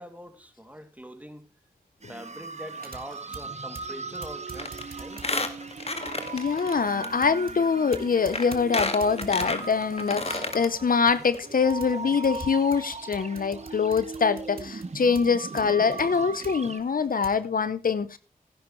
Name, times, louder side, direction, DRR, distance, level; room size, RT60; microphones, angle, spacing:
voice 1, 0.0-1.5 2.1-5.3, equal, 10° right, 2.5 m, -44 dB
sound 1, 2.0-16.8, right 4 dB, 45° right, 1.1 m, -39 dB
sound 2, 2.7-17.5, right 4 dB, 70° right, 1.7 m, -48 dB
Squeak, 4.6-4.8 5.1-6.7 7.0-7.1 7.9-8.0 8.3-10.7 11.1-11.2 11.4-11.5, left 2 dB, 40° left, 1.8 m, -30 dB
voice 2, 6.3-18.2, left 5 dB, 65° left, 0.7 m, -24 dB
16.5 x 10.5 x 3.1 m
cardioid pair, 40°, 16 cm